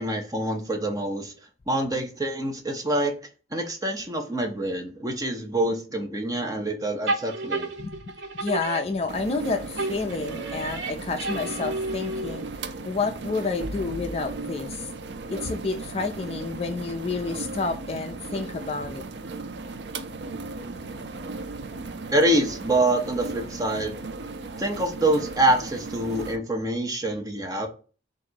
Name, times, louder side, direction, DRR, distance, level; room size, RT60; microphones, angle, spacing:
voice 1, 0.0-1.3 1.7-3.1 3.5-7.7 22.1-23.9 24.6-27.7, right 1 dB, 20° right, 0.8 m, -26 dB
sound 1, 7.1-9.4 9.8-12.6, right 2 dB, 85° right, 0.8 m, -32 dB
voice 2, 7.8-14.9 15.3-19.1, left 4 dB, 35° left, 0.4 m, -30 dB
sound 2, 9.1-26.4, right 3 dB, 70° right, 0.5 m, -36 dB
3.9 x 2.5 x 4.5 m
head